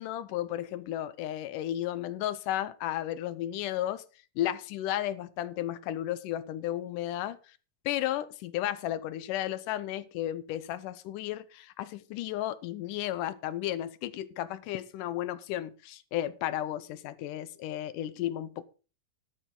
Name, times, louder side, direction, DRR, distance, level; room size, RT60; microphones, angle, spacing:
voice 1, 0.0-4.0 4.4-7.4 7.9-18.7, left 12 dB, 80° left, 2.2 m, -33 dB
13.0 x 11.0 x 3.8 m
omnidirectional pair, 3.8 m